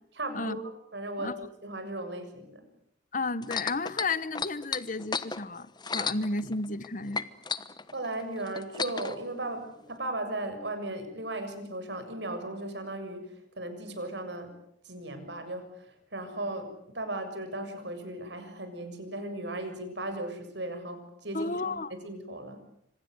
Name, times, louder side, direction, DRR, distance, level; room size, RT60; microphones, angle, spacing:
voice 1, 0.2-2.7 7.9-14.5 14.8-22.6, right 1 dB, 70° right, 7.0 m, -37 dB
voice 2, 3.1-7.2 21.3-21.9, left 3 dB, 45° left, 1.1 m, -33 dB
sound 1, 3.4-6.9 7.1-9.2 9.9-10.0, left 5 dB, 25° left, 1.2 m, -33 dB
28.0 x 26.0 x 8.1 m
head